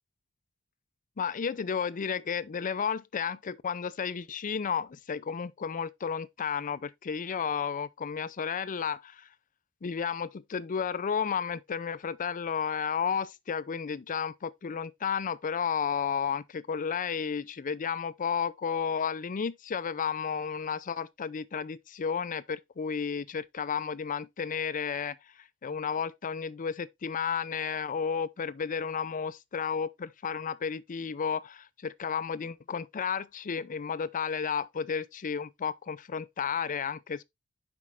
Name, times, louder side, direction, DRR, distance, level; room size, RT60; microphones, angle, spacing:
voice 1, 1.2-9.3 9.8-37.2, left 6 dB, 35° left, 0.4 m, -32 dB
7.4 x 5.2 x 3.4 m
head